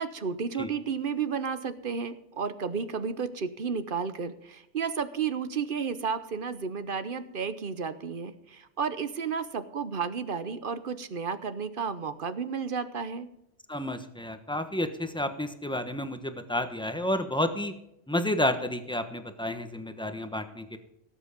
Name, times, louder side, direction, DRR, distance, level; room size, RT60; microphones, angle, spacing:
voice 1, 0.0-13.3, right 6 dB, 55° right, 12 dB, 1.1 m, -32 dB
voice 2, 13.7-17.7 18.1-20.8, left 1 dB, 5° left, 8 dB, 1.1 m, -30 dB
17.0 x 8.0 x 5.2 m, 0.83 s
omnidirectional pair, 1.1 m